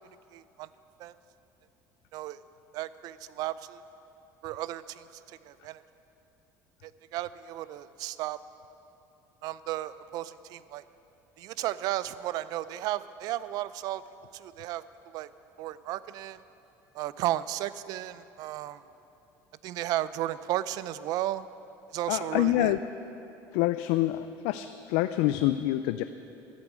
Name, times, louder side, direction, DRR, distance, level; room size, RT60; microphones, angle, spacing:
voice 1, 0.3-0.7 1.0-1.1 2.1-2.4 2.7-3.8 4.4-5.8 6.8-8.4 9.4-10.8 11.4-14.0 14.3-15.3 15.6-16.4 16.9-18.8 19.6-21.5 21.9-22.7, right 14 dB, 60° right, 16 dB, 0.4 m, -34 dB
voice 2, 22.1-22.8 23.5-26.0, left 15 dB, 85° left, 11 dB, 0.4 m, -26 dB
12.0 x 8.3 x 8.2 m, 2.9 s
cardioid pair, 135°, 7 cm